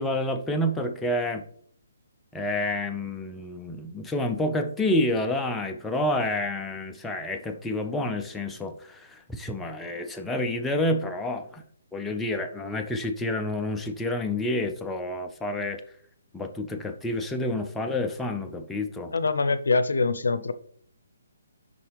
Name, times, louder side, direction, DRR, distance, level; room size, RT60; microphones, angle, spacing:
voice 1, 0.0-1.5 2.3-11.6 11.9-15.8 16.3-19.1, left 1 dB, 5° left, 0.5 m, -29 dB
voice 2, 19.1-20.5, left 4 dB, 80° left, 0.6 m, -24 dB
11.0 x 4.0 x 3.4 m
hypercardioid pair, 160°, 0 cm